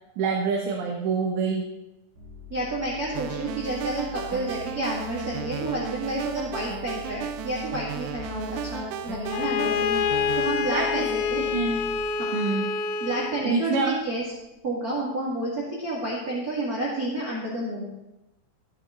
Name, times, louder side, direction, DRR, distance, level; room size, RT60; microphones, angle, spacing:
voice 1, 0.2-1.7 10.7-11.1 11.5-11.8 12.3-12.7 13.4-13.9, right 5 dB, 75° right, -1 dB, 3.4 m, -26 dB
sound 1, 2.1-12.0, left 5 dB, 60° right, 5.4 m, -43 dB
voice 2, 2.5-11.4 12.2-12.4 13.0-14.2 14.6-17.9, right 1 dB, 45° right, -5 dB, 1.2 m, -30 dB
sound 2, 3.1-10.5, right 11 dB, 90° right, 3.0 m, -35 dB
Bowed string instrument, 9.3-13.5, left 6 dB, 85° left, 2.9 m, -27 dB
14.0 x 10.0 x 3.9 m, 0.98 s
omnidirectional pair, 5.3 m